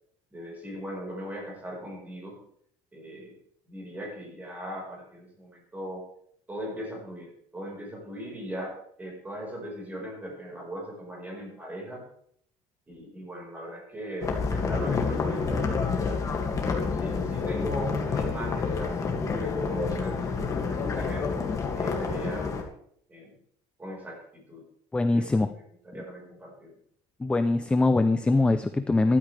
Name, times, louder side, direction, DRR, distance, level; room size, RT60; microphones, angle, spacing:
voice 1, 0.3-2.4 2.9-3.3 3.7-6.0 6.5-12.0 12.9-16.2 16.6-21.3 21.7-22.7 23.1-23.3 23.8-24.6 25.1-26.8, right 1 dB, 15° right, -1 dB, 4.7 m, -39 dB
sound 1, 14.2-22.6, left 5 dB, 25° left, 2.1 m, -28 dB
voice 2, 24.9-25.5 27.2-29.2, left 2 dB, 10° left, 10 dB, 0.5 m, -23 dB
15.0 x 12.5 x 3.4 m, 0.66 s
cardioid pair, 165°, 13 cm